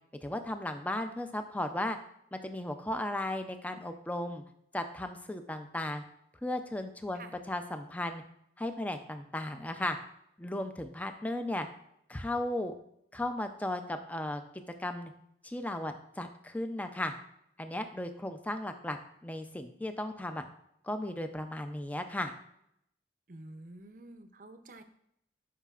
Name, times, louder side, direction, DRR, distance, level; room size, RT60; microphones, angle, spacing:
voice 1, 0.2-2.0 2.3-4.4 4.7-6.0 6.4-8.2 8.6-10.0 10.4-11.7 12.1-12.7 13.1-14.4 14.8-15.1 15.4-17.1 17.6-19.0 19.2-20.4 20.8-22.3, left 1 dB, 10° left, 7 dB, 0.4 m, -35 dB
voice 2, 23.3-24.8, right 2 dB, 45° right, 9 dB, 0.6 m, -49 dB
11.0 x 5.0 x 2.4 m, 0.75 s
head